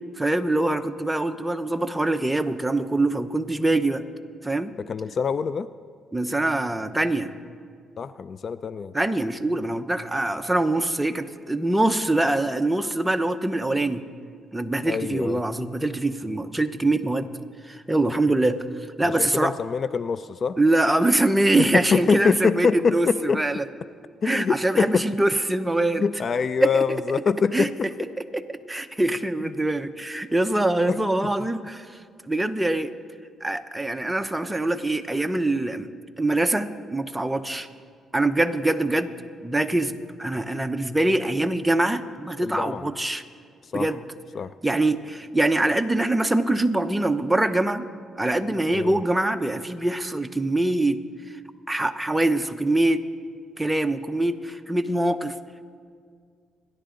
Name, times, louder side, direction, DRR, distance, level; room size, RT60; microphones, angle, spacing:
voice 1, 0.2-4.0 4.4-4.7 6.1-7.3 8.9-14.0 14.5-17.3 17.6-18.7 19.0-19.5 20.6-23.6 24.2-26.1 26.6-27.0 27.5-27.7 28.2-32.0 32.3-32.9 33.4-35.9 36.2-37.7 38.1-39.1 39.4-43.2 43.7-44.0 44.6-47.9 48.2-51.0 51.7-53.0 53.6-55.3, right 2 dB, 10° right, 8 dB, 0.8 m, -24 dB
voice 2, 4.8-5.7 8.0-8.9 14.9-15.4 19.0-20.6 21.6-23.4 24.2-25.0 26.0-27.9 30.9-31.0 42.4-42.8 43.7-43.9 44.4-44.5 48.7-49.0, left 5 dB, 45° left, 15 dB, 0.4 m, -24 dB
28.5 x 11.0 x 3.9 m, 2.1 s
cardioid pair, 90°, 0 cm